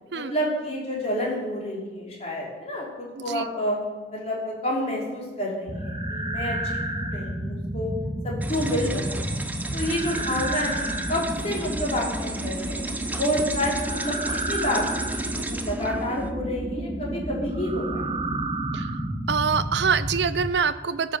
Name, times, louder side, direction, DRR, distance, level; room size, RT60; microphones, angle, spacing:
voice 1, 0.1-3.8 4.1-7.9 8.2-9.2 9.7-12.8 13.2-14.2 14.5-18.1, equal, 35° left, -3 dB, 3.6 m, -29 dB
voice 2, 3.2-3.5 18.7-18.9 19.3-21.2, right 6 dB, 70° right, 14 dB, 0.6 m, -25 dB
sound 1, 5.7-20.5, right 1 dB, 25° right, 1.0 m, -30 dB
sound 2, 8.4-16.3, right 2 dB, 10° right, 0.5 m, -34 dB
15.5 x 7.3 x 6.6 m, 1.3 s
head